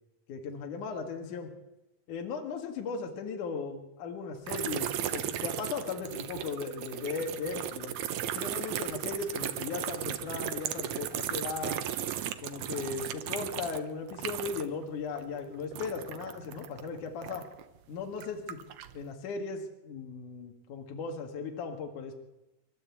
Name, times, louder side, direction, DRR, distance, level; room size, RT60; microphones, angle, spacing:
voice 1, 0.3-1.5 2.1-7.9 8.3-11.8 12.4-17.5 17.9-18.6 18.9-22.2, left 5 dB, 60° left, 3 dB, 3.2 m, -37 dB
sound 1, 4.5-14.8 15.1-17.6 18.1-19.0, right 10 dB, 65° right, 1.9 m, -36 dB
25.5 x 13.0 x 8.5 m, 0.96 s
omnidirectional pair, 4.2 m